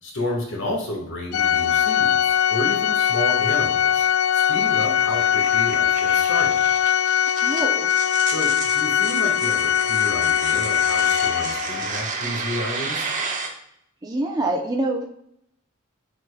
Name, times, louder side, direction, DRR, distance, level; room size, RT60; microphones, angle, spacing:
voice 1, 0.0-4.1 4.3-6.6 8.3-13.1, left 1 dB, 60° left, -1 dB, 1.4 m, -31 dB
Organ, 1.3-11.9, left 9 dB, 90° left, 0.4 m, -21 dB
sound 1, 2.8-13.5, right 4 dB, 35° right, 1.0 m, -33 dB
voice 2, 7.4-7.9 14.0-15.0, right 2 dB, 20° right, 0 dB, 0.6 m, -25 dB
8.8 x 5.0 x 2.2 m, 0.73 s
head